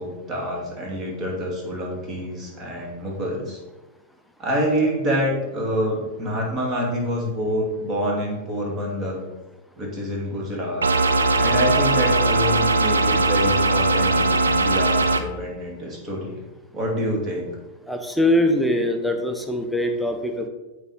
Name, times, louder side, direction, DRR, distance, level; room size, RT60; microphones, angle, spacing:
voice 1, 0.0-3.6 4.4-9.2 9.8-10.8 11.4-16.4 16.7-17.5, equal, 30° right, -2 dB, 2.5 m, -26 dB
sound 1, 10.8-15.2, right 2 dB, 80° right, 0.5 m, -19 dB
voice 2, 17.9-20.5, left 1 dB, ahead, 4 dB, 0.8 m, -22 dB
8.6 x 3.6 x 4.3 m, 1.1 s
figure-of-eight pair, 95°, 0 cm